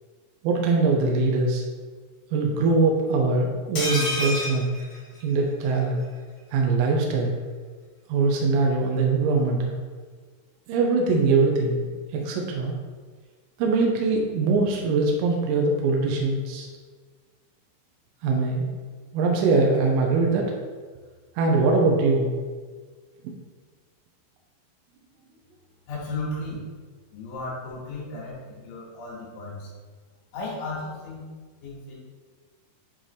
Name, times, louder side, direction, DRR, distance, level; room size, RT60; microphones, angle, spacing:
voice 1, 0.4-1.6 2.3-4.8 5.2-6.0 6.5-7.3 8.1-9.8 10.7-12.8 13.6-16.7 18.2-18.7 19.1-20.5 21.4-22.3, right 3 dB, 80° right, 0 dB, 3.3 m, -22 dB
sound 1, 3.7-5.7 6.0-6.1 6.4-6.5, left 1 dB, 50° left, 1.7 m, -30 dB
voice 2, 25.9-26.6 27.1-29.7 30.3-31.3 31.6-32.0, left 2 dB, 70° left, -7 dB, 4.1 m, -35 dB
9.6 x 3.7 x 3.4 m, 1.5 s
omnidirectional pair, 5.9 m